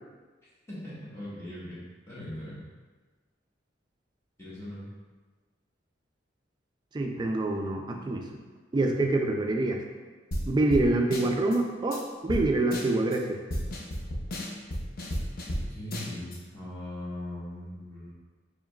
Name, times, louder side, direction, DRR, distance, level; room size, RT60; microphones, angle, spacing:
voice 1, 0.7-1.8 2.1-2.6 4.4-4.8 15.7-18.1, left 1 dB, 15° left, -10 dB, 1.1 m, -39 dB
voice 2, 6.9-8.2 8.7-9.8 10.5-13.4, right 2 dB, 25° right, 2 dB, 0.3 m, -26 dB
sound 1, 10.3-10.4 10.7-10.8 11.1-11.6 11.9-12.0 12.3-12.4 12.7-13.2 13.5-15.6 15.9-16.4, equal, 55° left, 0.6 m, -32 dB
4.6 x 3.1 x 2.3 m, 1.3 s
head